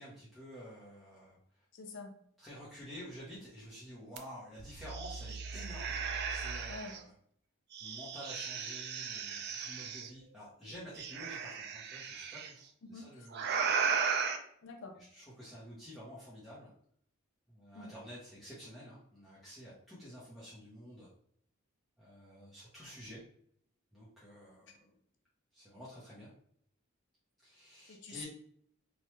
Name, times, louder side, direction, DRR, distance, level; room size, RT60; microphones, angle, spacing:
voice 1, 0.0-1.4 2.4-7.1 7.8-13.6 15.0-16.7 17.5-21.1 22.0-23.2 23.9-24.9 25.5-26.3 27.4-28.2, equal, ahead, -10 dB, 0.7 m, -50 dB
voice 2, 1.7-2.1 6.7-6.9 12.8-13.1 14.6-14.9 17.7-17.9 27.9-28.2, left 4 dB, 60° left, 4 dB, 0.5 m, -46 dB
sound 1, 4.2-4.3 4.6-7.0 7.7-10.1 11.0-12.5 13.3-14.4, right 6 dB, 50° right, 0.3 m, -36 dB
3.1 x 2.2 x 2.9 m, 0.65 s
head